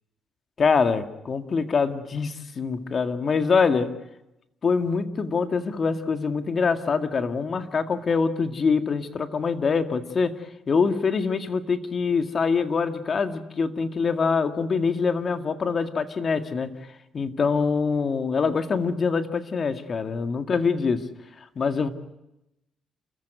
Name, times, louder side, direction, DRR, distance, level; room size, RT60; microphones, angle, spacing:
voice 1, 0.6-3.9 4.6-10.4 10.7-16.7 17.1-21.1 21.6-21.9, left 5 dB, 45° left, 8 dB, 2.0 m, -24 dB
30.0 x 15.0 x 9.2 m, 0.91 s
cardioid pair, 90°, 0 cm